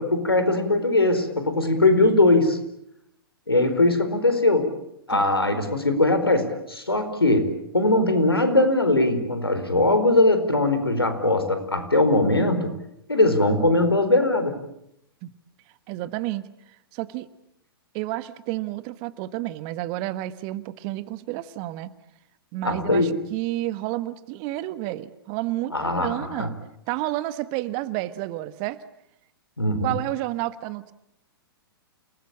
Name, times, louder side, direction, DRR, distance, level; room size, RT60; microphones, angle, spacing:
voice 1, 0.0-2.6 3.5-4.7 5.1-12.7 13.1-14.5 22.6-23.1 25.7-26.5 29.6-30.0, left 2 dB, 85° left, 9 dB, 4.5 m, -21 dB
voice 2, 5.1-5.7 15.2-15.3 15.9-16.5 16.9-17.3 17.9-21.9 22.5-26.5 26.9-28.8 29.8-30.9, right 16 dB, 35° right, 14 dB, 1.4 m, -30 dB
29.5 x 21.0 x 8.7 m, 0.79 s
figure-of-eight pair, 110°, 12 cm